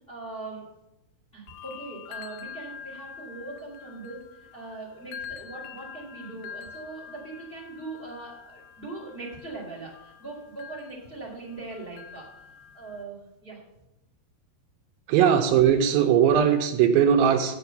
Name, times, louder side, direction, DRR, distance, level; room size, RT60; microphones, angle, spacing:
voice 1, 0.1-0.7 1.3-13.6, right 3 dB, 20° left, -4 dB, 2.5 m, -41 dB
sound 1, 1.5-13.0, left 7 dB, 80° left, 2.4 m, -45 dB
voice 2, 15.1-17.6, right 8 dB, 80° right, 5 dB, 2.3 m, -19 dB
8.1 x 6.5 x 6.8 m, 0.90 s
omnidirectional pair, 4.4 m